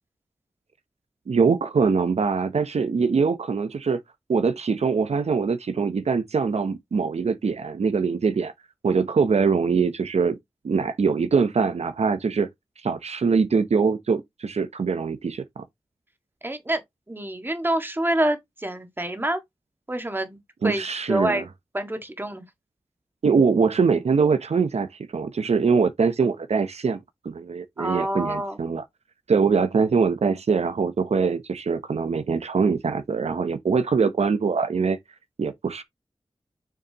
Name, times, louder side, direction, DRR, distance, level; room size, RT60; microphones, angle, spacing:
voice 1, 1.3-4.0 4.3-8.5 8.8-10.4 10.6-12.5 12.8-15.6 20.6-21.4 23.2-27.0 27.2-28.8 29.3-35.0 35.4-35.8, right 5 dB, 85° right, 0.8 m, -23 dB
voice 2, 16.4-16.8 17.1-19.4 19.9-21.4 21.7-22.4 27.8-28.6, right 1 dB, 20° right, 1.7 m, -27 dB
6.8 x 6.3 x 2.9 m
wide cardioid pair, 90°, 11 cm